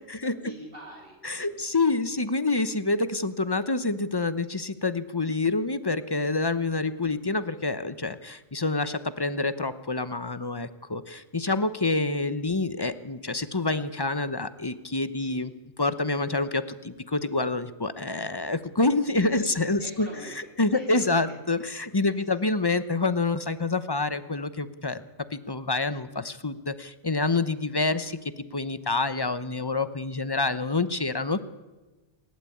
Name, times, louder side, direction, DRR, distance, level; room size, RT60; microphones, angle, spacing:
voice 1, 0.2-2.2 15.2-15.5 19.2-21.3 22.1-22.4, right 1 dB, 55° right, -2 dB, 3.9 m, -46 dB
voice 2, 1.2-15.5 15.8-20.1 20.6-25.0 25.3-28.2 28.5-31.4, left 3 dB, 25° left, 12 dB, 0.9 m, -27 dB
28.0 x 12.5 x 8.6 m, 1.2 s
omnidirectional pair, 1.1 m